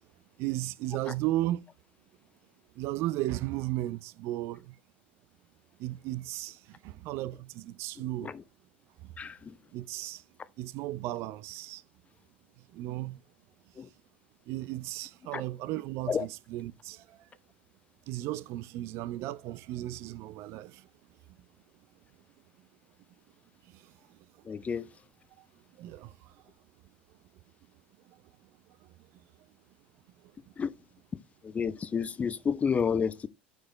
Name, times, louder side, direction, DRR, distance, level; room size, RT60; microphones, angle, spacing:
voice 1, 0.4-1.6 2.8-4.8 5.8-8.3 9.7-10.2 10.6-11.8 12.7-13.2 14.5-17.3 18.1-20.9 23.6-24.2 25.4-25.5 25.8-26.3 28.1-28.2 28.8-28.9, right 16 dB, 50° right, 0.4 m, -35 dB
voice 2, 9.2-9.6 13.8-13.9 15.3-15.4 16.1-16.3 24.5-24.9 30.6-30.7 31.4-33.3, left 6 dB, 25° left, 0.5 m, -30 dB
9.2 x 4.8 x 3.1 m
figure-of-eight pair, 70°, 6 cm